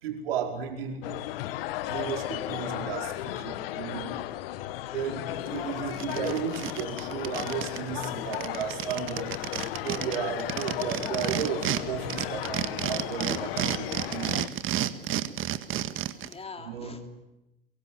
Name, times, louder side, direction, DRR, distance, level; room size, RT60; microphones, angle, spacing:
voice 1, 0.0-1.1 1.9-4.1 4.9-9.3 9.8-14.5 16.6-17.0, right 8 dB, 75° right, 3 dB, 4.9 m, -34 dB
sound 1, 1.0-14.5, left 14 dB, 70° left, 1.4 m, -35 dB
sound 2, 5.5-5.6 5.9-7.8 8.0-8.1 8.3-11.8 12.1-16.3, right 12 dB, 45° right, 1.7 m, -31 dB
voice 2, 16.1-17.1, left 4 dB, 20° left, 6 dB, 3.2 m, -45 dB
23.5 x 22.5 x 9.0 m, 0.96 s
hypercardioid pair, 85°, 30 cm